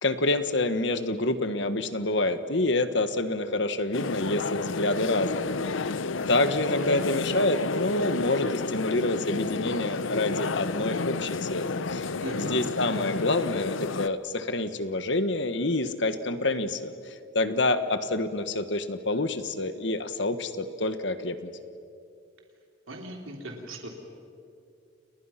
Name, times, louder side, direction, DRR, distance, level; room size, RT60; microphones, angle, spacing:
voice 1, 0.0-6.0 6.3-21.5, left 2 dB, 60° left, 10 dB, 1.5 m, -27 dB
sound 1, 3.9-14.1, left 4 dB, 75° left, 0.7 m, -31 dB
voice 2, 12.2-12.7 22.9-23.9, right 1 dB, 85° right, 1 dB, 3.5 m, -38 dB
30.0 x 30.0 x 5.9 m, 2.5 s
head